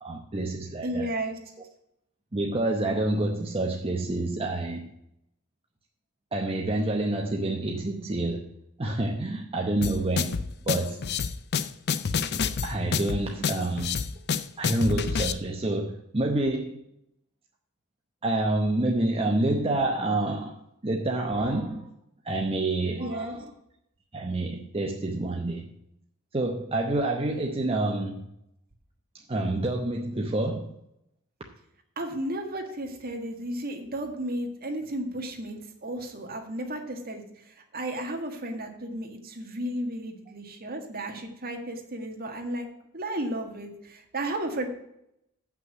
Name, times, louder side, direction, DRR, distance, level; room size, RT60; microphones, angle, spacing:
voice 1, 0.0-1.1 2.3-4.9 6.3-8.5 8.8-10.4 10.6-11.0 12.6-14.0 14.6-16.8 18.2-20.6 20.8-21.9 22.2-23.5 24.1-25.7 26.3-28.3 29.3-30.7, right 2 dB, 25° right, 1 dB, 0.8 m, -28 dB
voice 2, 0.8-1.4 23.0-23.4 32.0-42.7 42.9-44.7, right 1 dB, 45° right, 3 dB, 1.7 m, -33 dB
sound 1, 9.8-15.3, left 6 dB, 50° left, 0.5 m, -28 dB
7.9 x 6.0 x 7.9 m, 0.79 s
head